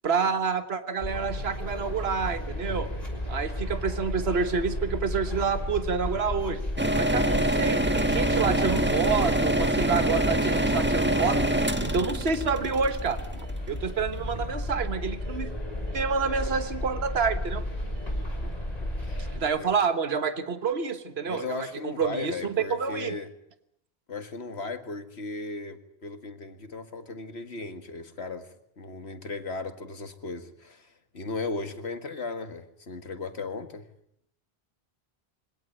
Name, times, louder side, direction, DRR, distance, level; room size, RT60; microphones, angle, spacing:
voice 1, 0.0-2.9 3.3-6.6 6.9-11.4 11.8-15.5 15.9-17.6 19.3-23.2, right 5 dB, 70° right, 1.6 m, -28 dB
sound 1, 1.0-19.4, left 1 dB, 35° left, 6.4 m, -33 dB
sound 2, 6.8-13.7, right 1 dB, 10° right, 1.5 m, -25 dB
voice 2, 18.4-19.3 19.6-19.7 21.3-23.3 24.1-28.5 28.8-30.9 31.1-33.9, left 3 dB, 75° left, 2.1 m, -36 dB
24.5 x 18.0 x 9.0 m
omnidirectional pair, 1.1 m